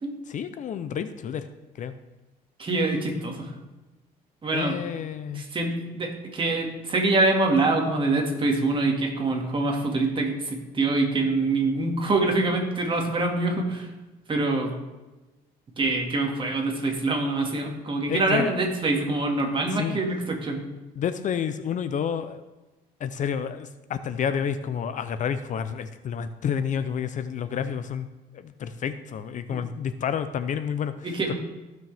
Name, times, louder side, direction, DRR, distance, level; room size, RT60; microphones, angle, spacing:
voice 1, 0.3-1.5 1.7-1.9 4.5-5.5 18.1-18.5 19.7-20.0 21.0-22.4 23.0-28.1 28.3-31.3, left 8 dB, 50° left, 11 dB, 0.6 m, -30 dB
voice 2, 2.6-3.5 4.4-4.8 5.4-13.9 14.3-14.7 15.8-20.6 31.0-31.3, right 2 dB, 30° right, 1 dB, 2.0 m, -25 dB
15.0 x 6.2 x 3.5 m, 1.1 s
cardioid pair, 110°, 17 cm